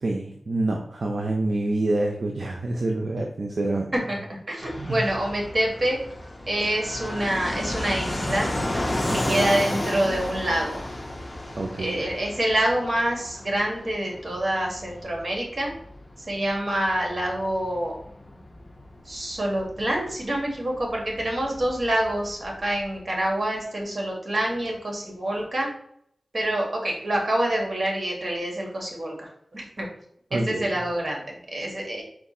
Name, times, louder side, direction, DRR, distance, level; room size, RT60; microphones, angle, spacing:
voice 1, 0.0-3.9 4.8-5.0 9.1-9.6 11.6-12.1 30.3-30.8, right 2 dB, 70° right, 1 dB, 0.5 m, -27 dB
voice 2, 4.1-6.0 6.5-8.5 9.1-10.8 11.8-15.7 16.3-18.0 19.0-25.7 26.3-29.9 30.3-32.0, right 1 dB, 50° right, -1 dB, 1.5 m, -26 dB
Fixed-wing aircraft airplane, 4.6-23.0, left 1 dB, 25° left, 0.8 m, -33 dB
4.6 x 2.4 x 4.1 m, 0.69 s
cardioid pair, 55°, 0 cm